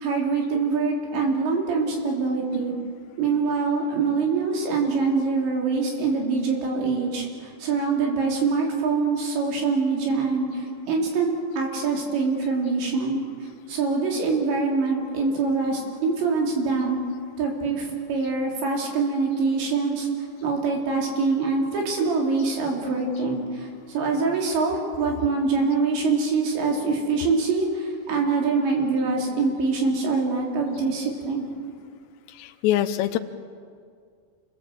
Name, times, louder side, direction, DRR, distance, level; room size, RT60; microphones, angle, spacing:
voice 1, 0.0-2.7 3.2-13.2 13.7-17.0 17.4-20.1 20.4-31.5, right 4 dB, 85° right, 0 dB, 5.7 m, -24 dB
voice 2, 32.4-33.2, left 12 dB, 85° left, 9 dB, 3.0 m, -23 dB
28.0 x 21.0 x 7.8 m, 2.2 s
omnidirectional pair, 5.0 m